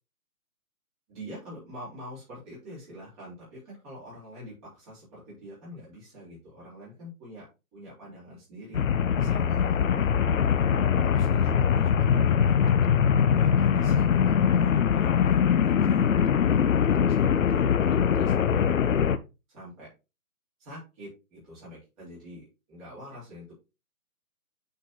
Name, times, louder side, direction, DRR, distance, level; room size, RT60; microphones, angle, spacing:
voice 1, 1.1-7.4 7.7-8.8 9.1-10.4 11.1-12.7 13.3-18.6 19.5-19.9 20.6-23.5, equal, 25° right, -8 dB, 3.8 m, -45 dB
sound 1, 8.7-19.2, left 7 dB, 60° left, 0.7 m, -22 dB
9.3 x 4.4 x 3.1 m, 0.28 s
figure-of-eight pair, 150°, 44 cm